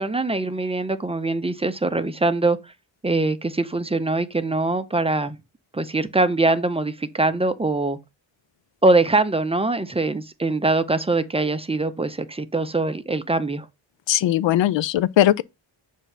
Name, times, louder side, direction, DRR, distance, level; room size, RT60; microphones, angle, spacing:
voice 1, 0.0-2.6 3.0-5.4 5.7-8.0 8.8-13.7, right 2 dB, 10° right, 0.6 m, -22 dB
voice 2, 14.1-15.4, left 12 dB, 65° left, 0.5 m, -19 dB
7.1 x 2.7 x 5.6 m
cardioid pair, 80°, 48 cm